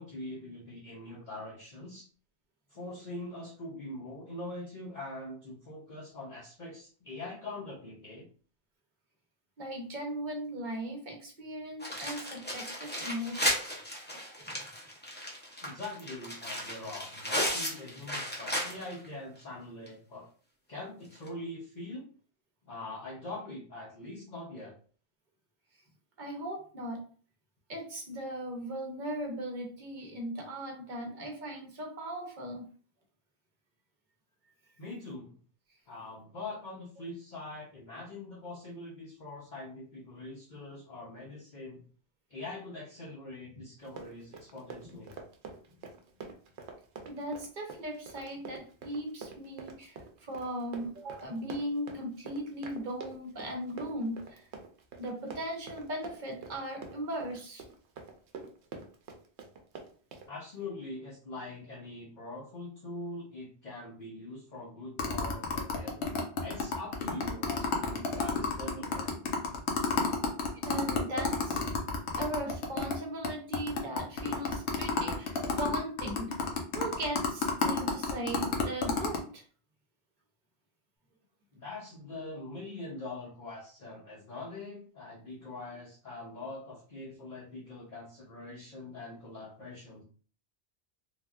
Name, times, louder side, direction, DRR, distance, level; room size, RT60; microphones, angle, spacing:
voice 1, 0.0-2.1 2.7-8.3 15.6-20.3 20.7-22.1 22.6-24.8 34.8-35.3 35.9-41.9 42.3-45.2 60.3-66.1 66.4-69.2 81.5-90.0, left 2 dB, 45° left, -5 dB, 0.8 m, -43 dB
voice 2, 9.6-13.6 14.4-14.6 26.2-27.0 27.7-32.7 44.8-45.0 47.1-54.5 55.0-57.6 70.6-71.6 72.2-76.3 76.7-79.4, right 1 dB, 50° right, 2 dB, 0.8 m, -38 dB
sound 1, 11.8-19.1 19.4-19.5 19.9-20.0 21.2-21.3, equal, 10° left, 0.5 m, -35 dB
Run, 43.8-60.3, right 4 dB, 75° right, 0.9 m, -46 dB
sound 2, 65.0-73.0 73.2-73.3 73.5-79.2, left 5 dB, 75° left, 0.9 m, -30 dB
3.3 x 2.3 x 2.4 m, 0.42 s
omnidirectional pair, 1.2 m